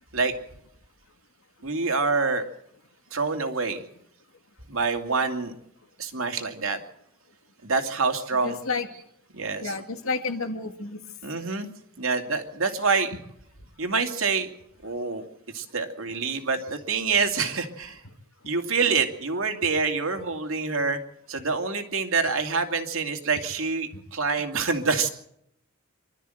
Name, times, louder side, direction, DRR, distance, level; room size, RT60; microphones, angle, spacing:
voice 1, 1.6-2.4 3.1-3.8 4.7-5.5 6.0-6.8 7.6-8.6 9.3-9.8 11.2-11.7 12.0-13.2 13.8-14.5 14.8-15.2 15.5-18.0 18.5-21.0 21.3-25.1, right 4 dB, 70° right, 5 dB, 2.6 m, -26 dB
voice 2, 8.4-8.9 9.6-11.0 23.9-24.0, left 4 dB, 70° left, 6 dB, 2.2 m, -30 dB
25.5 x 13.0 x 7.9 m, 0.73 s
head